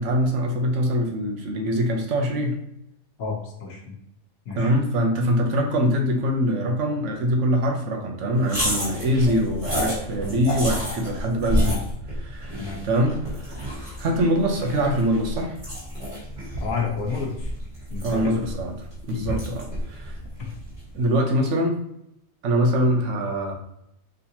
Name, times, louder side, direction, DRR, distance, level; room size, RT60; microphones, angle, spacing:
voice 1, 0.0-2.6 4.6-11.8 12.1-13.7 14.0-15.6 18.0-20.2 20.9-21.7 22.4-23.5, equal, 60° right, 2 dB, 1.1 m, -23 dB
voice 2, 3.2-4.0 4.5-4.7 11.5-11.7 12.6-12.8 16.6-17.5 17.9-18.4 19.1-19.2 20.4-20.5, left 5 dB, 75° left, -1 dB, 1.4 m, -30 dB
sound 1, 8.4-20.9, equal, 35° right, 1.9 m, -30 dB
4.1 x 3.8 x 2.8 m, 0.80 s
omnidirectional pair, 1.5 m